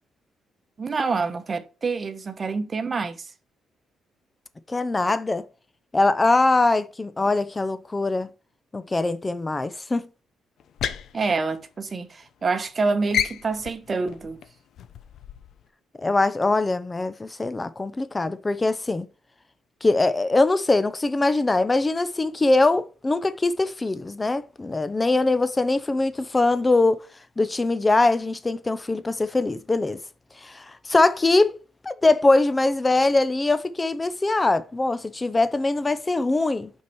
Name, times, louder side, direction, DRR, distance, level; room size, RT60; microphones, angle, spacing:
voice 1, 0.8-3.3 11.1-14.4, right 4 dB, 35° right, 1.0 m, -27 dB
voice 2, 4.7-5.4 5.9-8.3 8.7-10.1 16.0-19.1 19.8-27.0 27.4-30.0 30.4-31.6 31.8-36.7, left 2 dB, 20° left, 0.6 m, -22 dB
sound 1, 10.6-12.2 12.5-12.8 13.1-15.6, left 9 dB, 70° left, 0.6 m, -31 dB
5.8 x 4.7 x 4.6 m
cardioid pair, 90°, 0 cm